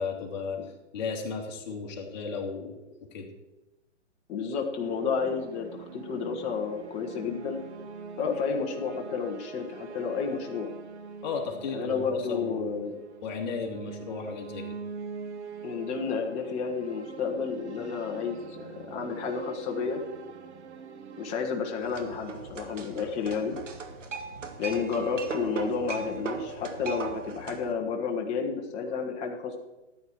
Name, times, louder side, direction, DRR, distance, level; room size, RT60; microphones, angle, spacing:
voice 1, 0.0-3.3 11.2-12.8 13.2-14.8, left 5 dB, 35° left, 1 dB, 2.4 m, -35 dB
voice 2, 4.3-7.6 8.2-10.7 11.7-13.0 15.6-20.0 21.2-23.6 24.6-29.6, left 5 dB, 15° left, 1 dB, 1.2 m, -31 dB
sound 1, 4.8-21.4, right 5 dB, 65° right, 1.4 m, -44 dB
sound 2, 21.8-27.7, right 4 dB, 80° right, 2.0 m, -38 dB
14.0 x 9.1 x 4.7 m, 1.0 s
hypercardioid pair, 150°, 36 cm